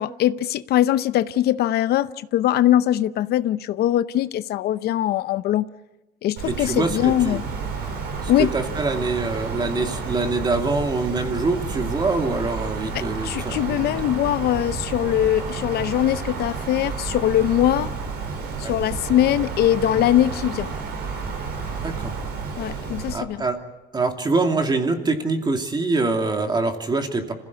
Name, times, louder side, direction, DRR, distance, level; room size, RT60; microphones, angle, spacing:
voice 1, 0.0-5.7 6.2-7.4 8.3-8.5 12.9-17.9 18.6-20.7 22.6-23.5, left 12 dB, 70° left, 0.7 m, -21 dB
voice 2, 6.4-7.4 8.2-14.0 18.6-18.8 21.8-22.1 23.1-23.6 23.9-27.3, right 3 dB, 25° right, 2.6 m, -24 dB
Wind, 6.4-23.1, right 4 dB, 80° right, 4.8 m, -31 dB
26.5 x 16.0 x 8.5 m
cardioid pair, 110°, 17 cm